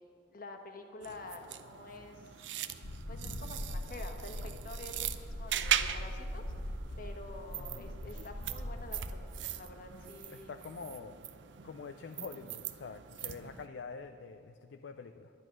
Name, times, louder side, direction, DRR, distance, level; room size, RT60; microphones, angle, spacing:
voice 1, 0.3-2.4 3.1-10.5, left 2 dB, 50° left, 4 dB, 1.2 m, -48 dB
sound 1, 1.0-13.7, right 10 dB, 80° right, 0.5 m, -40 dB
sound 2, 2.8-9.2, left 1 dB, 90° left, 1.0 m, -41 dB
voice 2, 7.6-7.9 10.3-11.2 11.6-15.3, left 5 dB, 70° left, 8 dB, 0.4 m, -46 dB
11.0 x 10.5 x 6.1 m, 2.4 s
head